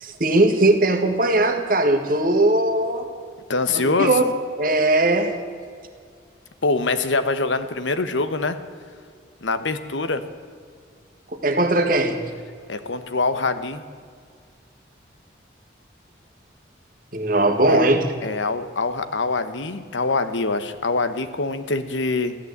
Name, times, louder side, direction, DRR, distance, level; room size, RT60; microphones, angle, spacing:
voice 1, 0.0-3.1 3.7-4.3 4.6-5.4 11.4-12.2 17.1-18.1, right 2 dB, 45° right, 5 dB, 1.6 m, -19 dB
voice 2, 3.5-4.2 6.6-8.6 9.4-10.2 12.7-13.8 17.7-17.9 18.2-22.4, left 3 dB, 80° left, 11 dB, 1.1 m, -24 dB
15.0 x 11.0 x 8.0 m, 2.1 s
head